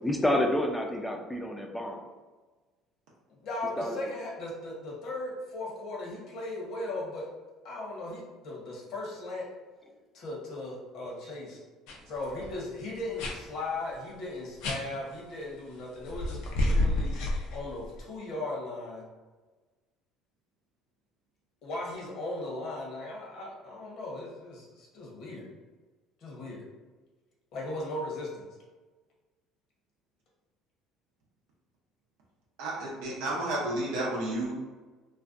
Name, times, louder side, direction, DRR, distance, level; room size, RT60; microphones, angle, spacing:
voice 1, 0.0-2.1 3.8-4.0, left 1 dB, 5° left, 2 dB, 0.4 m, -29 dB
voice 2, 3.3-7.3 7.6-9.5 10.1-11.6 12.1-17.2 17.5-19.0 21.6-25.5 26.2-26.6 27.5-28.4, left 2 dB, 60° left, -3 dB, 0.8 m, -37 dB
sound 1, 11.9-12.0 12.3-12.5 13.2-13.4 14.6-14.8 16.1-18.0, left 1 dB, 80° left, 0.4 m, -29 dB
voice 3, 32.6-34.5, right 1 dB, 85° right, -4 dB, 0.5 m, -31 dB
2.5 x 2.1 x 2.4 m, 1.3 s
supercardioid pair, 100°, 0 cm